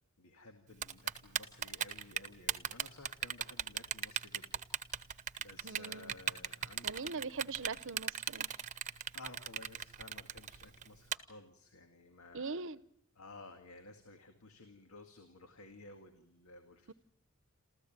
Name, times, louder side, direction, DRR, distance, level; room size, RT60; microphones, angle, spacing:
voice 1, 0.2-4.6 5.0-7.2 9.1-12.6 13.2-16.9, left 2 dB, 80° left, 2.1 m, -55 dB
Typing, 0.8-11.2, right 8 dB, 35° right, 0.9 m, -37 dB
voice 2, 5.6-6.2 6.8-8.5 12.3-12.8 16.9-17.0, right 4 dB, 65° right, 0.8 m, -41 dB
28.0 x 14.5 x 9.0 m
head